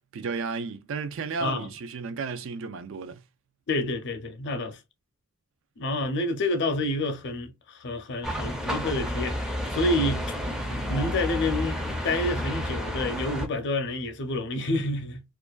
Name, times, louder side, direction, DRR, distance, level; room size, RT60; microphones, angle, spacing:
voice 1, 0.1-3.2, right 4 dB, 65° right, 0.4 m, -33 dB
voice 2, 3.7-4.8 5.8-10.2 10.9-11.8 12.0-15.2, left 2 dB, 55° left, 0.5 m, -28 dB
sound 1, 8.2-13.5, equal, 5° right, 0.4 m, -30 dB
2.5 x 2.2 x 2.3 m
head